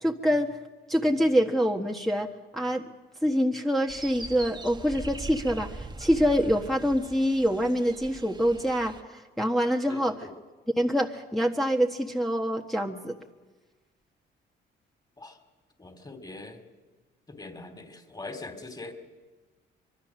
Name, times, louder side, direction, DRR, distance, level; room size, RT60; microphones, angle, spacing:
voice 1, 0.0-0.6 0.9-2.8 3.2-10.2 10.8-13.1, equal, ahead, 0 dB, 1.4 m, -25 dB
sound 1, 3.9-9.0, right 2 dB, 20° right, 1.1 m, -41 dB
voice 2, 9.9-10.3 15.2-15.4 15.8-16.6 17.3-18.9, left 2 dB, 20° left, 6 dB, 3.3 m, -42 dB
25.0 x 23.0 x 6.4 m, 1.3 s
cardioid pair, 90°, 20 cm